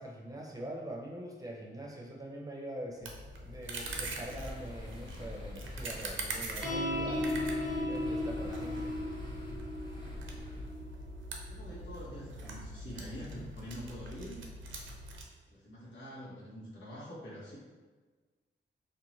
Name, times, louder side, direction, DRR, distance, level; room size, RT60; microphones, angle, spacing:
voice 1, 0.0-7.4 7.8-8.9, right 1 dB, 20° right, -2 dB, 0.6 m, -44 dB
sound 1, 3.0-15.2, right 2 dB, 80° right, 0.5 m, -44 dB
sound 2, 3.8-10.7, left 1 dB, 25° left, 0.7 m, -46 dB
sound 3, 6.6-13.3, left 1 dB, 45° left, 1.3 m, -37 dB
voice 2, 11.5-14.4 15.5-17.6, equal, 75° left, -7 dB, 1.0 m, -45 dB
2.6 x 2.2 x 3.0 m, 1.4 s
cardioid pair, 55°, 20 cm